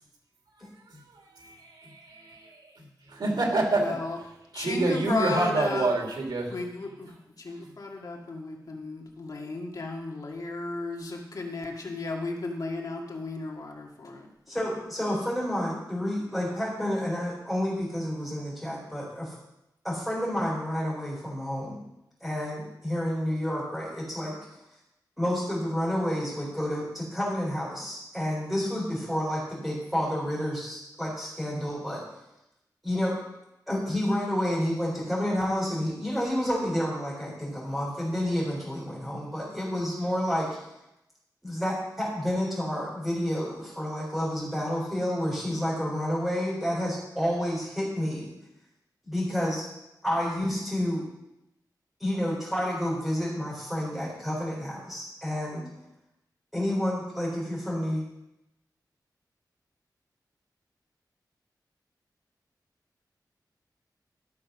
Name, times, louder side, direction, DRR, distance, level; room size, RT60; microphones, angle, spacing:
voice 1, 1.4-2.7 3.1-4.0 4.5-6.5, right 2 dB, 90° right, 1 dB, 2.9 m, -27 dB
voice 2, 3.8-4.2 4.5-5.9 6.5-14.3, left 3 dB, 55° left, 0 dB, 2.0 m, -34 dB
voice 3, 14.5-19.3 19.8-21.8 22.2-24.4 25.2-32.2 32.8-33.2 33.7-40.7 41.4-48.3 49.0-49.7 50.0-51.0 52.0-55.7 56.5-58.0, equal, ahead, -8 dB, 4.2 m, -29 dB
13.0 x 6.5 x 6.3 m, 0.89 s
wide cardioid pair, 135°, 7 cm